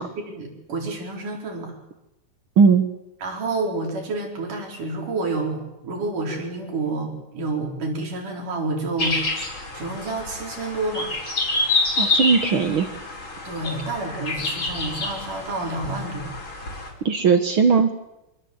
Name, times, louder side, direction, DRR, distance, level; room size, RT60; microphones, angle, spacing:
voice 1, 0.2-1.7 3.2-11.1 13.4-16.4, right 3 dB, 75° right, 1 dB, 6.0 m, -29 dB
sound 1, 9.0-16.9, left 3 dB, 35° left, 5.0 m, -27 dB
voice 2, 12.0-12.9 17.0-17.9, right 5 dB, 55° right, 8 dB, 1.6 m, -18 dB
25.5 x 21.5 x 8.0 m, 0.93 s
omnidirectional pair, 3.7 m